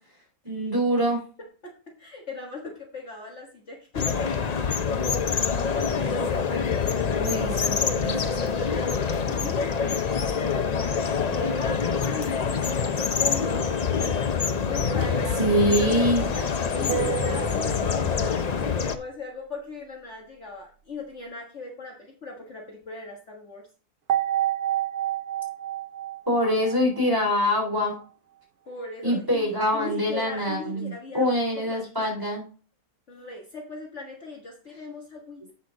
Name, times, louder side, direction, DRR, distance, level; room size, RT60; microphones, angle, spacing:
voice 1, 0.4-1.2 7.1-8.2 15.4-16.3 26.3-27.9 29.0-32.4, equal, 15° right, -2 dB, 3.7 m, -24 dB
voice 2, 2.0-5.0 5.8-6.9 8.4-9.7 11.2-13.7 14.7-16.4 16.8-23.6 28.7-31.3 31.7-31.9 33.1-35.5, left 3 dB, 50° left, 0 dB, 1.7 m, -39 dB
sound 1, 3.9-19.0, left 6 dB, 65° left, 0.4 m, -26 dB
sound 2, 16.9-18.4 24.1-27.4, right 12 dB, 80° right, 1.5 m, -30 dB
8.0 x 6.6 x 3.8 m, 0.39 s
omnidirectional pair, 1.6 m